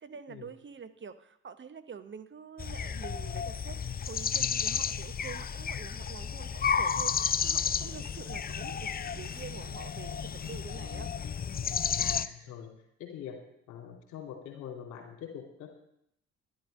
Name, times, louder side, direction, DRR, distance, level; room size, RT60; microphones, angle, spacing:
voice 1, 0.0-11.1, right 6 dB, 35° right, 10 dB, 0.9 m, -46 dB
sound 1, 2.6-12.3, left 7 dB, 30° left, 0.6 m, -32 dB
voice 2, 12.0-12.7 13.0-13.4 13.7-15.7, left 8 dB, 70° left, 2 dB, 2.6 m, -43 dB
12.0 x 11.0 x 5.3 m, 0.76 s
figure-of-eight pair, 45°, 32 cm